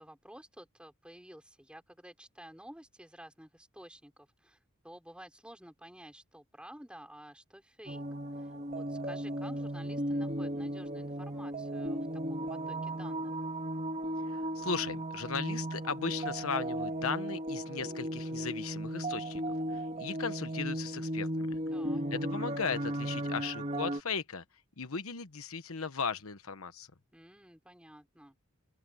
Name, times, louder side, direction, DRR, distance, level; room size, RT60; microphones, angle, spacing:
voice 1, 0.0-4.6 4.8-8.0 8.4-13.4 21.7-22.0 27.1-28.4, right 1 dB, 5° right, 5.8 m, -52 dB
sound 1, 7.9-24.0, right 1 dB, 30° right, 3.0 m, -36 dB
voice 2, 14.2-19.4 19.7-21.6 22.1-24.4 24.8-26.9, left 5 dB, 75° left, 1.2 m, -37 dB
open air
head